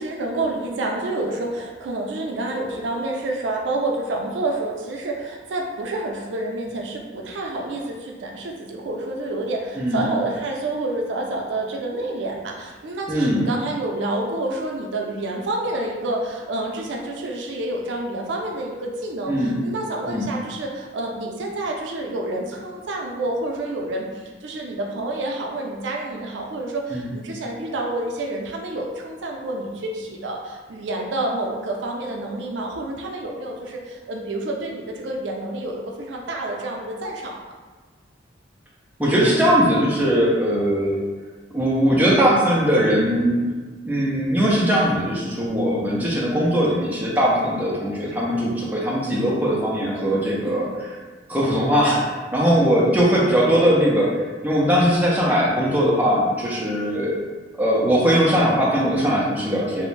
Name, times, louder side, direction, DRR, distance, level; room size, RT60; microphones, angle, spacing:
voice 1, 0.0-37.4 49.9-50.7 52.6-52.9, right 2 dB, 75° right, 0 dB, 0.4 m, -28 dB
voice 2, 13.1-13.5 19.3-19.6 20.1-20.3 26.9-27.1 39.0-41.0 41.5-43.5 43.8-50.9 51.3-57.2 57.5-59.9, equal, 10° right, -5 dB, 0.4 m, -20 dB
2.4 x 2.0 x 3.1 m, 1.3 s
head